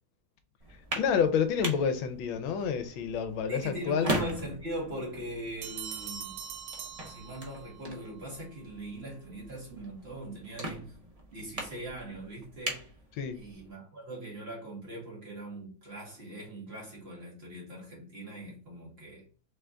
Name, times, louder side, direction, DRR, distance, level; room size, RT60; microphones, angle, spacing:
sound 1, 0.6-13.7, right 1 dB, 55° right, 0.4 m, -40 dB
voice 1, 1.0-4.1 13.2-13.4, left 7 dB, 80° left, 1.4 m, -28 dB
voice 2, 3.5-6.4 7.0-11.0 11.3-12.8 13.3-19.2, right 1 dB, 30° right, 1.8 m, -41 dB
sound 2, 5.6-7.9, right 8 dB, 90° right, 1.5 m, -41 dB
3.9 x 3.4 x 3.6 m
omnidirectional pair, 2.2 m